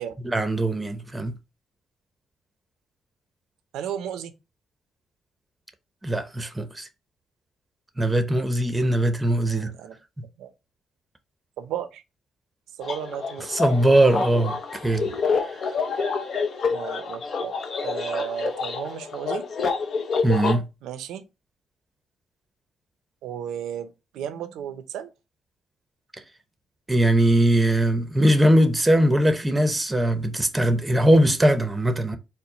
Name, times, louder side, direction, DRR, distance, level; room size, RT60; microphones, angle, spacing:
voice 1, 0.2-1.3 6.0-6.9 8.0-9.7 13.5-14.6 14.8-15.4 20.2-20.7 26.9-32.2, right 1 dB, 15° right, 0.7 m, -20 dB
voice 2, 3.7-4.3 9.5-10.0 10.4-10.5 11.6-12.0 12.8-13.5 16.7-17.5 17.8-19.4 20.8-21.3 23.2-25.1, right 9 dB, 85° right, 0.6 m, -33 dB
sound 1, 12.8-20.6, left 5 dB, 55° left, 0.7 m, -28 dB
4.4 x 2.1 x 3.9 m
cardioid pair, 90°, 0 cm